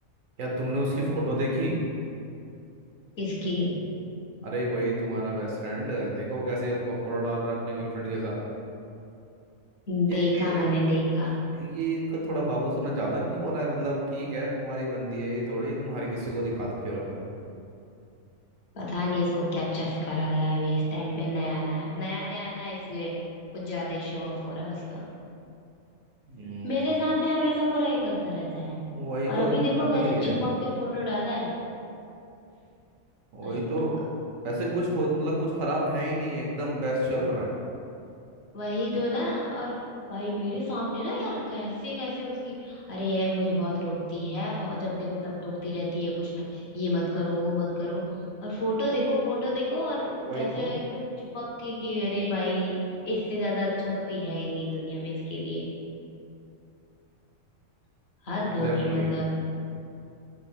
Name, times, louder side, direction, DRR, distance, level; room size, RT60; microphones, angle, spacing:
voice 1, 0.4-1.7 4.4-8.4 10.1-10.6 11.5-17.2 26.3-26.8 28.9-30.4 33.3-34.0 34.4-37.5 50.2-50.7 58.4-59.1, right 1 dB, 90° right, -3 dB, 1.1 m, -29 dB
voice 2, 3.2-3.8 9.9-11.4 18.7-23.2 23.5-25.0 26.6-28.8 29.3-31.6 33.4-33.5 38.5-39.7 40.1-48.0 48.4-55.7 58.2-59.3, left 1 dB, 60° left, -5 dB, 1.0 m, -29 dB
5.1 x 2.0 x 3.4 m, 2.6 s
omnidirectional pair, 1.3 m